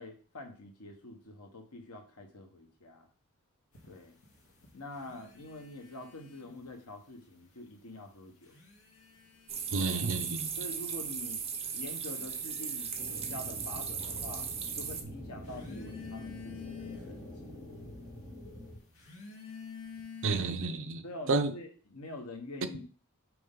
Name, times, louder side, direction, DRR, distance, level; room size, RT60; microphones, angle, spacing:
voice 1, 0.0-3.1 3.8-4.2 4.7-8.6 9.7-10.0 10.6-11.4 11.7-14.5 14.7-17.6 21.0-22.8, left 1 dB, 90° left, 1.2 m, -46 dB
sound 1, 3.7-6.8 7.1-7.9 8.3-20.4, left 6 dB, 70° left, 1.9 m, -50 dB
sound 2, 9.5-15.0, right 6 dB, 30° right, 0.8 m, -37 dB
voice 2, 9.7-10.5 20.2-21.5, right 3 dB, 60° right, 0.7 m, -31 dB
sound 3, 13.0-18.8, left 1 dB, 5° left, 2.7 m, -46 dB
6.1 x 4.5 x 3.7 m
head